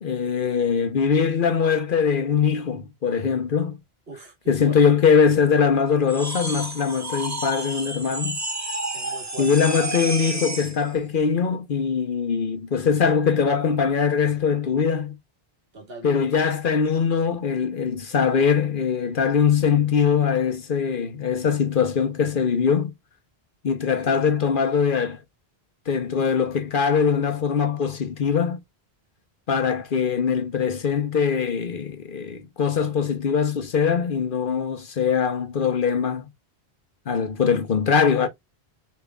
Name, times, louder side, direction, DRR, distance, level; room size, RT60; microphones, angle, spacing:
voice 1, 0.0-3.8 4.5-8.4 9.4-15.1 16.0-22.9 23.6-25.2 25.9-28.6 29.5-36.3 37.1-38.3, left 6 dB, 55° left, 1.0 m, -22 dB
voice 2, 4.1-4.8 8.9-9.5 15.7-16.3 24.0-24.3, right 2 dB, 70° right, 1.9 m, -41 dB
sound 1, 6.1-10.8, right 2 dB, 20° right, 0.8 m, -31 dB
6.8 x 3.4 x 2.3 m
omnidirectional pair, 1.0 m